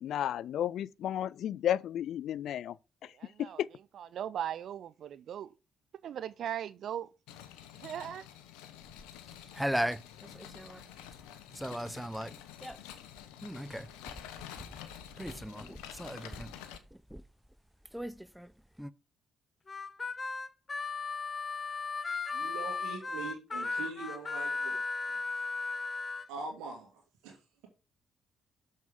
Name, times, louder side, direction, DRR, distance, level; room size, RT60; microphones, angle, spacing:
voice 1, 0.0-2.8 3.6-3.7, left 11 dB, 70° left, 0.3 m, -32 dB
voice 2, 3.1-3.6 3.9-5.5 6.0-7.1 7.7-8.3, right 10 dB, 65° right, 0.4 m, -38 dB
sound 1, 7.3-16.8, left 10 dB, 90° left, 1.0 m, -49 dB
sound 2, 8.8-11.2 11.5-17.5 17.8-18.9, equal, 5° right, 0.6 m, -38 dB
Harmonica, 19.7-26.2, left 4 dB, 35° left, 1.0 m, -36 dB
voice 3, 22.3-25.4 26.3-27.4, right 4 dB, 85° right, 2.4 m, -43 dB
6.9 x 6.4 x 3.7 m
supercardioid pair, 55°, 0 cm